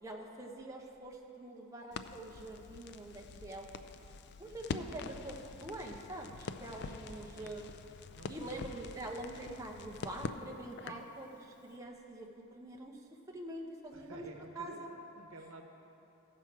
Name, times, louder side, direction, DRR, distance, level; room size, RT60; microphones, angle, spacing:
voice 1, 0.0-3.7 4.4-7.7 8.3-13.0 13.3-14.2 14.6-14.9, right 1 dB, 15° right, -1 dB, 0.7 m, -45 dB
Crackle, 1.9-11.1, left 4 dB, 50° left, 0.3 m, -45 dB
voice 2, 6.7-7.5 8.1-8.8 13.9-15.6, right 2 dB, 75° right, 3 dB, 0.9 m, -53 dB
15.5 x 6.0 x 4.6 m, 2.9 s
head